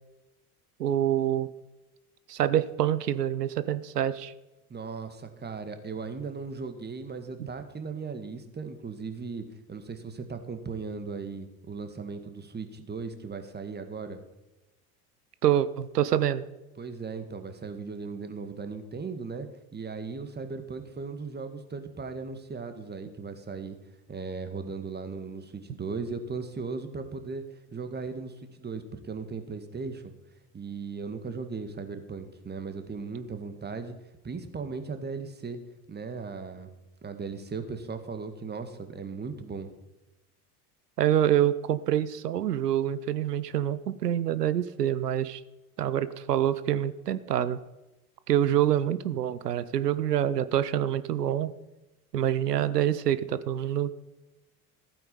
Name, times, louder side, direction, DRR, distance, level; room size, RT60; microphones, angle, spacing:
voice 1, 0.8-1.5 2.3-4.3 7.4-7.5 15.4-16.4 41.0-45.4 45.8-47.6 48.3-51.5 52.1-53.9, right 11 dB, 85° right, 15 dB, 0.7 m, -26 dB
voice 2, 4.7-14.2 16.8-19.5 19.7-23.8 24.1-27.4 27.7-30.1 30.5-34.0 34.2-35.6 35.9-36.7 37.0-39.7, right 4 dB, 20° right, 8 dB, 1.8 m, -37 dB
15.0 x 9.0 x 5.3 m, 1.0 s
figure-of-eight pair, 70°, 46 cm